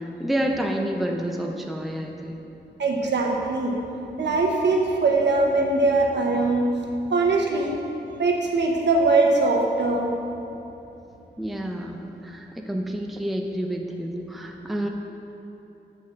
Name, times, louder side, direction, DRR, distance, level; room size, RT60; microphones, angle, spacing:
voice 1, 0.0-2.4 11.4-14.9, equal, ahead, 2 dB, 0.5 m, -29 dB
voice 2, 2.8-3.7 4.2-6.7 7.1-7.8 8.2-10.1, right 3 dB, 75° right, 0 dB, 1.0 m, -21 dB
8.2 x 4.4 x 6.0 m, 2.9 s
wide cardioid pair, 150°, 18 cm